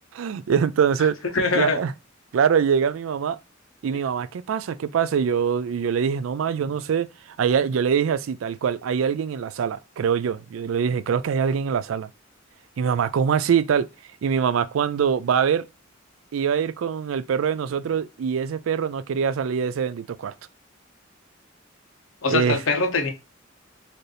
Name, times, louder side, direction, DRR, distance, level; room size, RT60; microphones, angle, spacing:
voice 1, 0.1-1.2 1.5-1.9 2.3-3.4 3.8-7.1 7.4-12.1 12.8-13.9 14.2-15.7 16.3-20.3 22.3-22.6, right 7 dB, 85° right, 0.4 m, -23 dB
voice 2, 1.3-1.8 22.2-23.1, left 3 dB, 85° left, 0.9 m, -22 dB
4.3 x 2.6 x 3.2 m
head